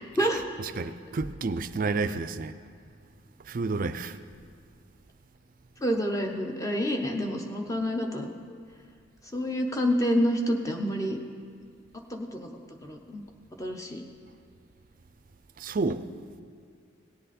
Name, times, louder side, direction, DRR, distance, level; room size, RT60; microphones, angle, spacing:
voice 1, 0.6-2.5 3.4-4.2 15.6-16.1, right 3 dB, 45° right, 0.4 m, -30 dB
voice 2, 5.8-8.3 9.3-11.2 12.1-12.5 12.8-13.2 13.6-14.0, equal, 15° left, 0.8 m, -28 dB
18.0 x 7.9 x 4.2 m
head